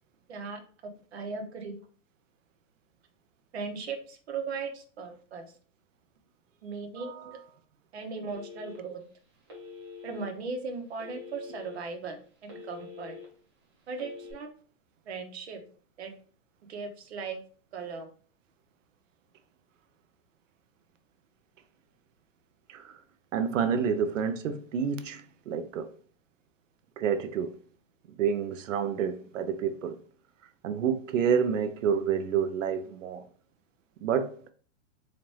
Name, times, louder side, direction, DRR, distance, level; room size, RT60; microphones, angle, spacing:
voice 1, 0.3-1.8 3.5-5.5 6.6-7.3 7.9-9.0 10.0-12.2 12.4-13.2 13.9-14.5 15.1-15.6 16.0-16.1 16.7-17.4 17.7-18.1, right 4 dB, 60° right, 0.9 m, -37 dB
voice 2, 7.0-7.4 22.7-22.9 23.3-25.9 27.0-27.5 28.2-30.0 30.6-33.2 34.0-34.4, right 7 dB, 85° right, 0.6 m, -29 dB
Telephone, 8.3-9.0 9.5-10.3 11.0-11.7 12.2-13.2 13.9-14.3, left 4 dB, 20° right, 0.8 m, -45 dB
4.2 x 2.5 x 3.1 m
hypercardioid pair, 180°, 38 cm